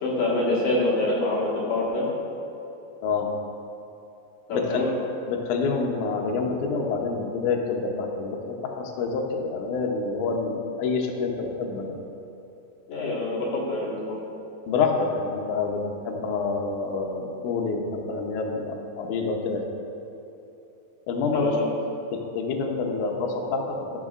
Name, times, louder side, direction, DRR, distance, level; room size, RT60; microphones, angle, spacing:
voice 1, 0.0-2.1 4.5-4.9 12.9-14.2 21.3-21.7, left 2 dB, 50° left, -7 dB, 2.0 m, -26 dB
voice 2, 4.5-4.8 5.3-12.0 14.7-19.7 21.1-21.6 22.1-23.9, left 4 dB, 80° left, 1 dB, 1.8 m, -27 dB
13.5 x 6.5 x 2.5 m, 2.9 s
omnidirectional pair, 4.6 m